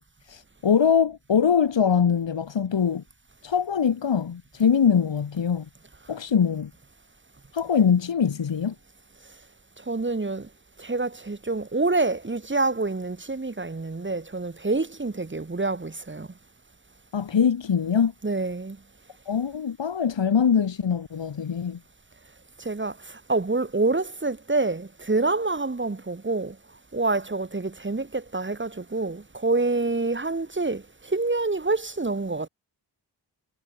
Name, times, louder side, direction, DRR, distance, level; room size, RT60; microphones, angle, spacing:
voice 1, 0.0-3.0 3.4-5.7 6.1-6.7 7.5-8.8 17.1-18.1 19.2-21.8, left 7 dB, 75° left, 2.9 m, -23 dB
voice 2, 9.8-10.5 10.8-16.3 18.2-18.8 22.6-26.6 26.9-32.5, right 3 dB, 25° right, 1.7 m, -27 dB
cardioid pair, 50°, 45 cm